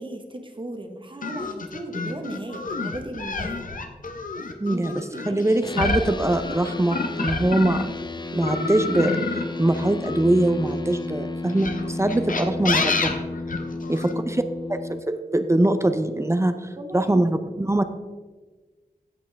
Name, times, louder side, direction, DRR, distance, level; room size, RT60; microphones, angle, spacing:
voice 1, 0.0-3.7 4.4-5.9 13.7-14.5 16.8-17.6, right 1 dB, 35° right, 5 dB, 1.3 m, -37 dB
sound 1, 1.2-8.0 8.4-10.8 11.5-14.1, left 3 dB, 65° left, 1.0 m, -28 dB
voice 2, 4.6-4.9 5.3-8.0 8.3-13.2 13.9-14.4 14.7-17.8, right 1 dB, 20° right, 9 dB, 0.6 m, -23 dB
sound 2, 5.6-15.0, left 2 dB, 30° left, 0.5 m, -33 dB
16.0 x 5.4 x 3.5 m, 1.3 s
wide cardioid pair, 75°, 15 cm